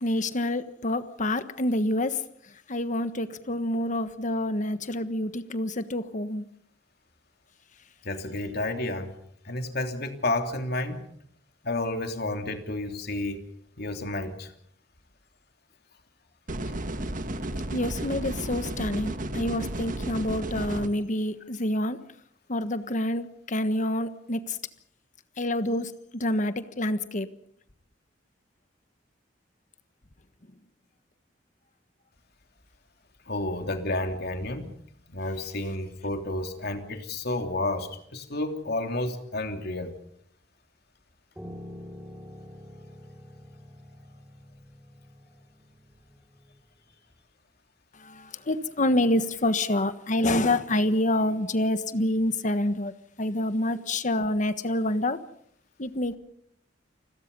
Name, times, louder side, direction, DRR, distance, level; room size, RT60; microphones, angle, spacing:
voice 1, 0.0-2.2 2.7-6.5 17.7-22.1 22.5-24.6 25.4-27.3 47.9-52.9 53.2-55.2 55.8-56.2, left 1 dB, 45° left, 1.4 m, -27 dB
voice 2, 8.0-9.1 9.4-11.0 11.6-13.4 13.8-14.5 33.3-34.7 35.1-39.9, left 2 dB, 60° left, 3.1 m, -31 dB
sound 1, 16.5-20.9, right 1 dB, 45° right, 1.7 m, -33 dB
Piano, 41.4-46.6, equal, 10° right, 4.8 m, -46 dB
29.5 x 21.0 x 5.5 m
head